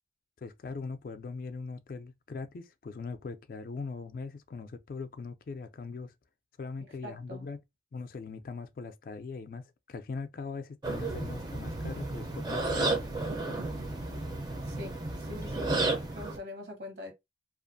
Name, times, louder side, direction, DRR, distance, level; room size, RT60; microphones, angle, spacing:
voice 1, 0.4-6.1 6.6-7.6 7.9-12.9, left 4 dB, 50° left, 0.3 m, -41 dB
voice 2, 6.8-7.5 14.6-15.8 16.1-17.1, left 1 dB, 70° right, 1.0 m, -44 dB
sound 1, 10.8-16.4, right 2 dB, 25° right, 0.4 m, -32 dB
2.5 x 2.4 x 2.5 m
head